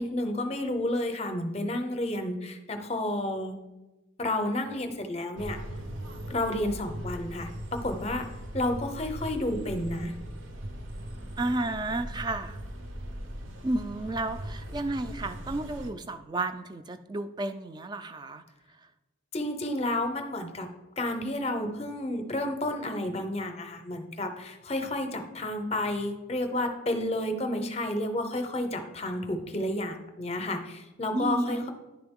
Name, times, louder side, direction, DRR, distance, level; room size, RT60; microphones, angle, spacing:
voice 1, 0.0-3.5 4.2-5.6 6.3-8.3 8.5-10.1 19.3-20.7 21.0-31.7, left 1 dB, 30° left, 7 dB, 0.6 m, -31 dB
sound 1, 5.3-15.9, equal, 75° right, 0.8 m, -39 dB
voice 2, 11.4-12.6 13.6-18.4 31.1-31.7, right 2 dB, 20° right, 10 dB, 0.3 m, -32 dB
10.5 x 3.8 x 3.6 m, 1.1 s
head